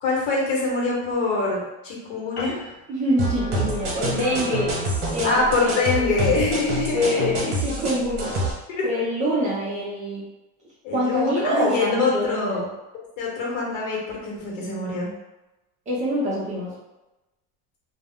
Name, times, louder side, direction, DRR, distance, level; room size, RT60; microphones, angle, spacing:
voice 1, 0.0-2.7 5.2-7.5 8.7-8.8 10.8-12.6 13.2-15.1, left 3 dB, 85° left, -3 dB, 1.1 m, -24 dB
sound 1, 2.4-7.1, left 2 dB, 30° left, 0.5 m, -43 dB
voice 2, 2.9-4.7 5.1-6.3 6.9-8.3 8.8-10.2 10.9-12.7 15.9-16.7, equal, 20° right, -6 dB, 0.5 m, -25 dB
sound 2, 3.2-8.5, right 1 dB, 45° right, 0.9 m, -27 dB
2.3 x 2.1 x 3.5 m, 1.0 s
cardioid pair, 175°, 36 cm